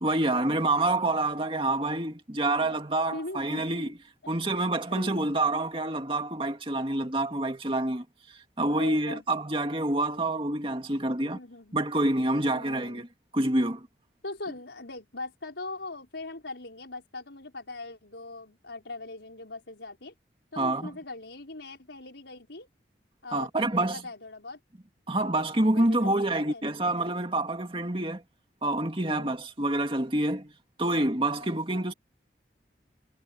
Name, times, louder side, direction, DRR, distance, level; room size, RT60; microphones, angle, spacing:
voice 1, 0.0-4.0 4.3-11.4 11.7-13.1 13.3-13.9 20.6-20.9 23.3-24.0 25.1-28.2 28.6-30.5 30.8-31.9, right 2 dB, 30° right, 2.4 m, -27 dB
voice 2, 3.1-3.9 4.2-4.3 4.9-5.3 8.7-9.2 11.2-11.8 12.4-13.1 14.2-20.1 20.5-22.7 23.2-24.6 25.7-26.6 29.1-29.4 31.4-31.5 31.7-31.9, left 2 dB, 85° left, 5.7 m, -41 dB
head